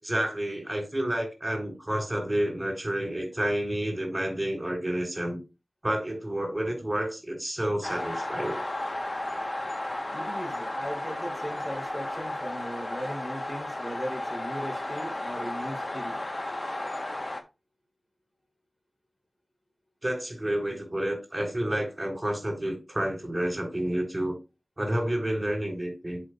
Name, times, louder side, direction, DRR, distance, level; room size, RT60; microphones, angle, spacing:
voice 1, 0.0-5.4 5.8-8.6 20.0-24.4 24.8-26.2, right 1 dB, 25° right, 4.1 m, -30 dB
sound 1, 7.8-17.4, left 1 dB, 35° left, 1.3 m, -34 dB
voice 2, 10.1-16.2, equal, 10° left, 3.5 m, -38 dB
10.5 x 5.3 x 2.5 m
wide cardioid pair, 65°, 0 cm